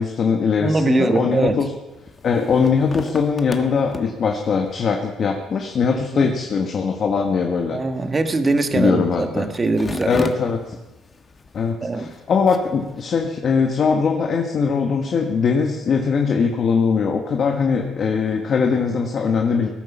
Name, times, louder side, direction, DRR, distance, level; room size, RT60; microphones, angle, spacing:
voice 1, 0.0-1.7 2.2-7.8 8.7-9.5 10.1-10.7 11.5-19.7, left 5 dB, 50° left, 3 dB, 1.5 m, -21 dB
voice 2, 0.6-1.6 6.1-6.3 7.7-10.3 11.8-12.1, right 3 dB, 25° right, 8 dB, 1.5 m, -21 dB
sound 1, 1.9-13.0, left 3 dB, 30° left, 1.4 m, -37 dB
17.5 x 9.9 x 7.2 m, 1.0 s
cardioid pair, 100°, 0 cm